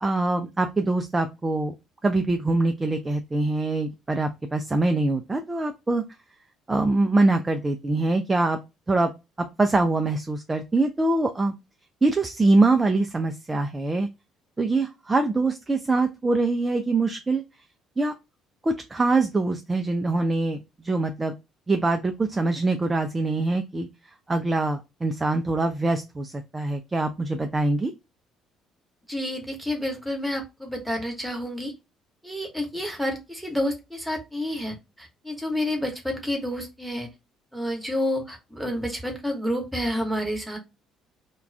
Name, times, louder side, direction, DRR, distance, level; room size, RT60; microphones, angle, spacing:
voice 1, 0.0-1.7 2.0-6.0 6.7-8.6 8.9-9.1 9.6-11.5 12.0-14.1 14.6-17.4 18.0-18.1 18.6-21.3 21.7-23.9 24.3-27.9, right 2 dB, 20° right, 6 dB, 0.3 m, -24 dB
voice 2, 29.1-31.7 32.2-37.1 37.5-40.6, left 1 dB, 5° right, 2 dB, 1.0 m, -29 dB
2.3 x 2.2 x 3.2 m, 0.24 s
figure-of-eight pair, 50°, 0 cm